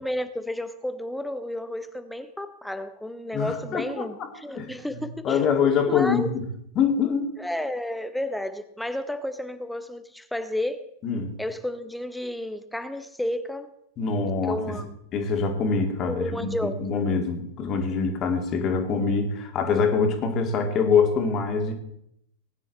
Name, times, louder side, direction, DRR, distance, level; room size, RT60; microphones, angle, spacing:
voice 1, 0.0-5.5 5.9-6.3 7.4-10.9 11.4-13.7 14.4-14.9 16.1-16.8, left 1 dB, 5° left, 0.8 m, -32 dB
voice 2, 3.3-4.3 4.5-6.4 6.8-7.3 11.0-11.3 14.0-14.8 15.1-16.5 16.8-21.7, left 5 dB, 30° left, 2.4 m, -24 dB
19.5 x 9.8 x 4.2 m
figure-of-eight pair, 90°, 0 cm